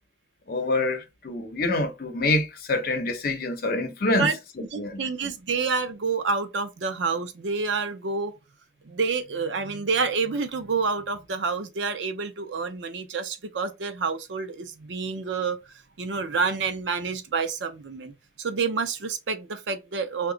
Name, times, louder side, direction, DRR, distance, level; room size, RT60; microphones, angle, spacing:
voice 1, 0.5-4.3 4.8-5.0, left 2 dB, 55° left, 0.7 m, -26 dB
voice 2, 4.7-8.3 8.8-15.6 16.0-20.3, right 4 dB, 80° right, 0.5 m, -28 dB
2.9 x 2.2 x 3.7 m
head